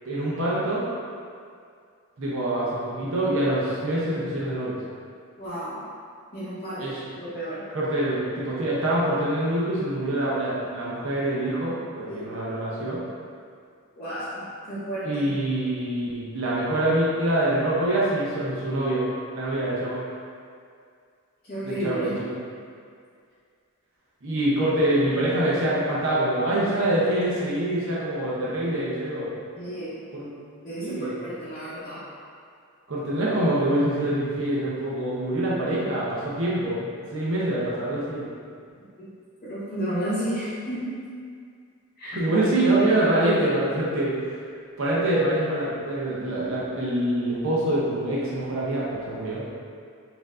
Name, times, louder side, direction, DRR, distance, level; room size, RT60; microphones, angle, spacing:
voice 1, 0.0-0.9 2.2-4.8 6.8-7.1 7.7-13.0 15.0-19.1 19.3-20.1 21.6-22.3 24.2-29.3 30.1-30.3 30.8-31.2 32.9-38.3 42.1-44.2 44.8-49.5, right 1 dB, 60° right, -7 dB, 0.7 m, -25 dB
voice 2, 5.4-5.8 6.3-6.8 7.2-7.6 12.0-12.4 13.9-15.3 21.4-22.1 29.6-29.9 30.6-32.0 39.4-41.0 42.0-42.2, right 1 dB, 35° left, -12 dB, 0.8 m, -32 dB
4.3 x 2.6 x 3.6 m, 2.3 s
head